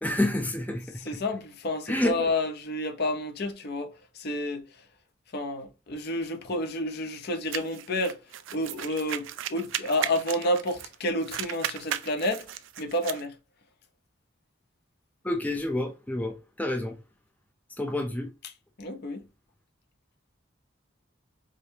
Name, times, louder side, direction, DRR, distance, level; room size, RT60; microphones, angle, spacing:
voice 1, 0.0-0.8 1.9-2.1 15.2-16.9 17.8-18.3, left 1 dB, 10° left, 0.5 m, -28 dB
voice 2, 1.0-3.9 4.2-4.6 5.3-8.2 8.5-12.5 12.8-13.3 18.4-18.5 18.8-19.2, left 1 dB, 55° left, 0.6 m, -30 dB
sound 1, 7.5-10.9 11.2-13.2, right 11 dB, 75° right, 0.3 m, -35 dB
4.9 x 2.0 x 2.7 m
head